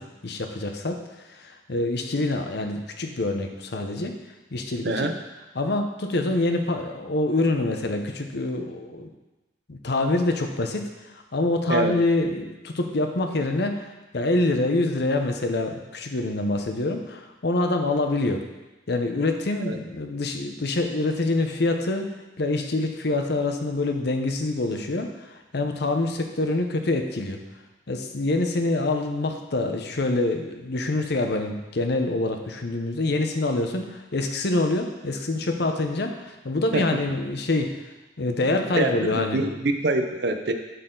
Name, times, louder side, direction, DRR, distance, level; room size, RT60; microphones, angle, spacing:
voice 1, 0.0-4.2 4.5-5.1 5.5-9.1 9.7-18.4 18.9-27.4 27.9-37.9 38.2-39.4, left 2 dB, 60° left, 4 dB, 0.8 m, -26 dB
voice 2, 38.8-40.5, right 2 dB, 60° right, 6 dB, 0.7 m, -25 dB
11.0 x 4.2 x 3.9 m, 1.1 s
head